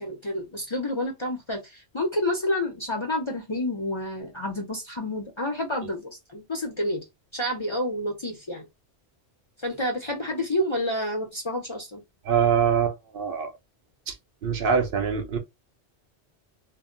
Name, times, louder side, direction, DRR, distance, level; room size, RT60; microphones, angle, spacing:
voice 1, 0.0-7.0 7.3-8.7 9.6-12.0, left 1 dB, 35° left, 0.5 m, -29 dB
voice 2, 12.2-13.5 14.1-14.2 14.4-15.4, right 6 dB, 65° right, 0.7 m, -24 dB
2.1 x 2.1 x 3.7 m
omnidirectional pair, 1.1 m